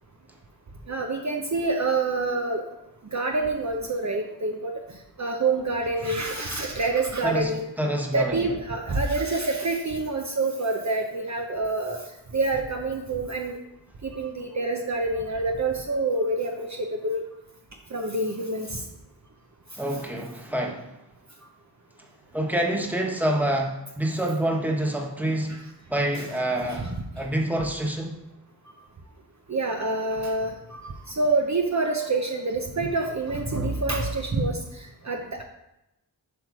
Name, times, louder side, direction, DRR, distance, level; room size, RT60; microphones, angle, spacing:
voice 1, 0.9-2.6 3.1-4.7 5.2-7.7 8.1-12.0 12.3-13.6 14.0-16.7 17.0-17.2 17.9-18.8 26.2-26.3 26.7-26.9 29.5-35.4, right 3 dB, 40° right, 2 dB, 0.9 m, -27 dB
voice 2, 7.2-8.5 19.8-20.9 22.3-25.6 25.9-26.8 27.2-28.1, right 1 dB, 5° right, 0 dB, 1.4 m, -27 dB
8.1 x 3.2 x 6.1 m, 0.90 s
cardioid pair, 50°, 43 cm